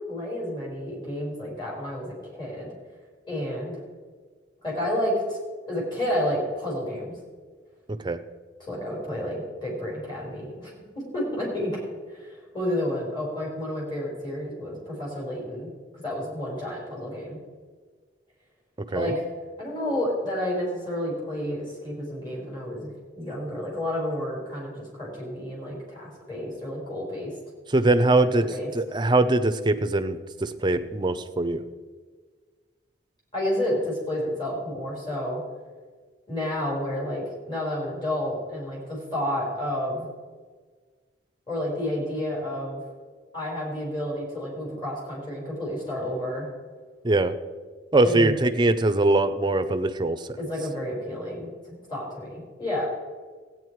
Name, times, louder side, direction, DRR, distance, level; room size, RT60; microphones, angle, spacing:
voice 1, 0.1-2.7 3.3-3.8 4.6-5.4 5.6-7.2 8.6-10.7 11.1-11.8 12.1-17.4 18.9-19.3 19.6-27.3 28.4-28.7 33.3-35.4 36.3-40.1 41.5-42.8 43.3-46.5 48.0-48.4 50.4-52.9, left 1 dB, 25° left, -4 dB, 4.5 m, -30 dB
voice 2, 27.7-28.5 28.7-31.6 47.0-47.3 47.9-50.3, right 2 dB, 25° right, 10 dB, 0.6 m, -22 dB
15.5 x 9.3 x 4.7 m, 1.5 s
head